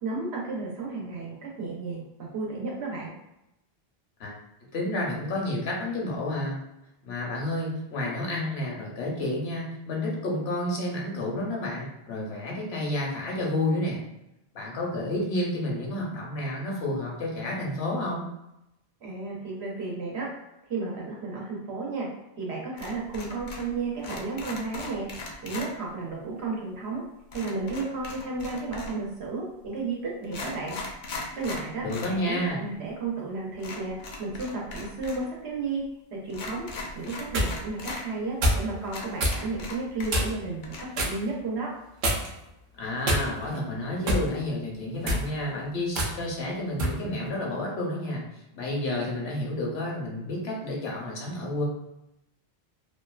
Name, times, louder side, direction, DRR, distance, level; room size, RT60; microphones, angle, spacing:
voice 1, 0.0-3.1 19.0-20.3 20.7-22.1 22.4-25.1 25.4-27.0 27.3-30.8 31.4-35.8 36.1-36.7 36.9-41.7, right 3 dB, 85° right, -3 dB, 1.1 m, -33 dB
voice 2, 4.7-6.6 7.0-14.0 14.5-18.3 31.8-32.7 42.8-48.2 48.5-51.6, left 1 dB, 80° left, -3 dB, 1.0 m, -30 dB
sound 1, 22.8-23.7 24.0-25.7 27.3-29.1 29.8-29.9 30.2-32.2 32.5-32.6 33.6-35.3 35.5-35.6 36.3-38.0 38.5-38.6 38.9-40.4 40.6-40.8, left 3 dB, 60° left, 0.6 m, -39 dB
sound 2, 37.0-37.5 38.4-38.7 39.2-39.4 40.1-40.4 40.9-41.2 42.0-42.4 43.0-43.6 44.1-44.3 44.9-45.3 45.9-46.1 46.8-47.0, equal, 60° right, 0.7 m, -25 dB
2.8 x 2.3 x 2.3 m, 0.88 s
omnidirectional pair, 1.1 m